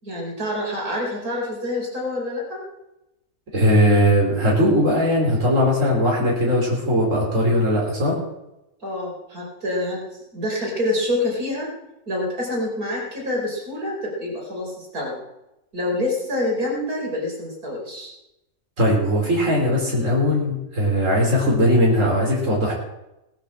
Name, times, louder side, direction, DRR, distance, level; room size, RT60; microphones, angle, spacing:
voice 1, 0.0-2.6 8.8-10.1 10.3-11.7 12.1-15.2 15.7-18.1, left 1 dB, 85° right, -2 dB, 5.2 m, -27 dB
voice 2, 3.5-8.2 18.8-22.7, equal, 60° right, -3 dB, 4.7 m, -19 dB
18.5 x 9.1 x 7.6 m, 0.91 s
omnidirectional pair, 1.5 m